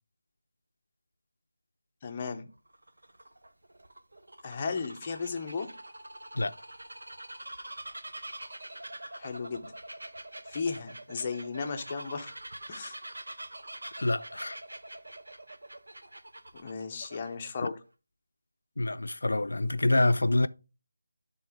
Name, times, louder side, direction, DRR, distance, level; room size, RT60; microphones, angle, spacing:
voice 1, 2.0-2.5 4.4-5.7 9.1-9.7 10.4-12.3 12.7-13.0 16.5-17.8, left 5 dB, 20° left, 0.6 m, -35 dB
Bird vocalization bird call bird song, 2.6-17.6, right 1 dB, 85° right, 0.9 m, -45 dB
voice 2, 14.0-14.6 17.6-17.7 18.8-20.5, left 2 dB, 85° left, 0.4 m, -26 dB
10.0 x 3.7 x 3.5 m
figure-of-eight pair, 175°, 0 cm